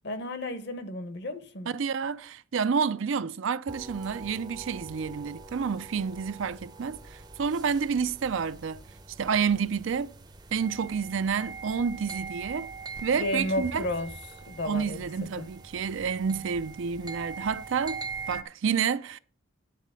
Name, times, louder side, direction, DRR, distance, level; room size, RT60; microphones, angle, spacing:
voice 1, 0.0-1.7 13.2-15.5, left 1 dB, 55° left, 1.0 m, -33 dB
voice 2, 1.7-8.8 9.2-10.1 10.5-12.7 13.0-13.9 14.6-18.0 18.3-19.2, right 6 dB, 65° right, 0.4 m, -29 dB
sound 1, 3.7-18.4, right 4 dB, 20° right, 0.6 m, -42 dB
10.0 x 4.1 x 7.5 m
head